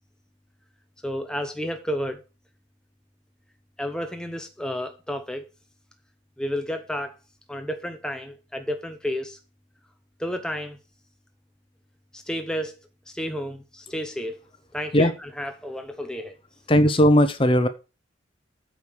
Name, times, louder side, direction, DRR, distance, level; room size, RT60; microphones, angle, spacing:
voice 1, 1.0-2.2 3.8-5.5 6.4-7.1 7.5-9.4 10.2-10.8 12.1-12.8 13.1-14.4 14.7-15.1 15.4-16.4, equal, 5° left, 0.9 m, -31 dB
voice 2, 16.7-17.7, equal, 25° left, 1.0 m, -17 dB
9.1 x 4.9 x 6.6 m
head